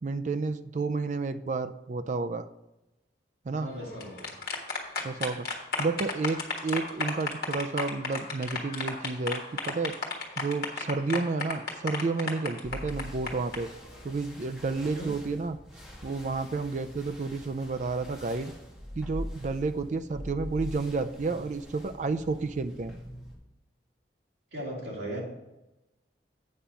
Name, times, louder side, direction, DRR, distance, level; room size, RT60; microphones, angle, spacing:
voice 1, 0.0-2.5 3.5-3.7 5.0-5.5 5.8-10.0 10.4-13.7 14.0-15.6 16.0-18.5 19.0-22.9, right 3 dB, 40° right, 10 dB, 0.4 m, -31 dB
voice 2, 3.5-4.3 14.9-15.1 24.5-25.2, right 1 dB, 70° right, -3 dB, 2.8 m, -38 dB
sound 1, 3.8-13.6, left 4 dB, 55° left, 1.5 m, -33 dB
sound 2, 12.6-23.3, equal, 5° right, 2.2 m, -43 dB
8.5 x 5.7 x 5.1 m, 0.97 s
head